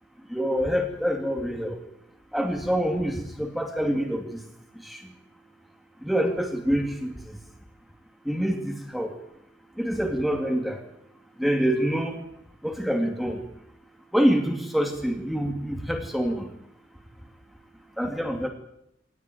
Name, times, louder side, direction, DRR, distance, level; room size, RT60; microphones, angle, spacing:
voice 1, 0.3-1.8 2.3-4.4 4.8-5.0 6.0-7.1 8.3-9.1 9.8-10.8 11.4-12.1 12.6-13.4 14.1-16.5 18.0-18.5, equal, ahead, 3 dB, 2.5 m, -26 dB
24.0 x 18.5 x 9.3 m, 0.78 s
head